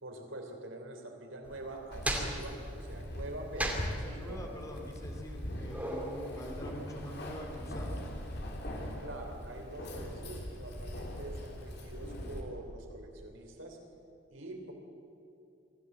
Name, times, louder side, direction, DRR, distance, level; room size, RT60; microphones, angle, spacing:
voice 1, 0.0-4.4 9.0-13.8 14.3-14.7, right 1 dB, 75° right, 3 dB, 3.5 m, -45 dB
sound 1, 1.4-6.5, right 1 dB, 10° right, 2.5 m, -38 dB
Keys jangling, 1.9-12.4, equal, 55° left, 3.1 m, -41 dB
voice 2, 3.9-8.0, equal, 15° left, 1 dB, 3.0 m, -45 dB
24.0 x 15.0 x 7.9 m, 2.7 s
head